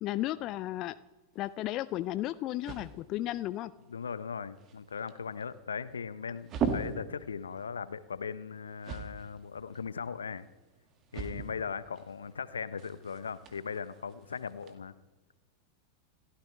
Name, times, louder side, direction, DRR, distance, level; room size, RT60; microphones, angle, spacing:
voice 1, 0.0-1.0 1.4-3.7, left 15 dB, 35° left, 15 dB, 0.5 m, -34 dB
sound 1, 1.3-14.7, right 6 dB, 30° right, 2.0 m, -42 dB
voice 2, 3.9-10.5 11.1-14.9, left 6 dB, 70° left, 16 dB, 0.8 m, -38 dB
29.0 x 14.5 x 3.4 m, 1.2 s
figure-of-eight pair, 90°, 0 cm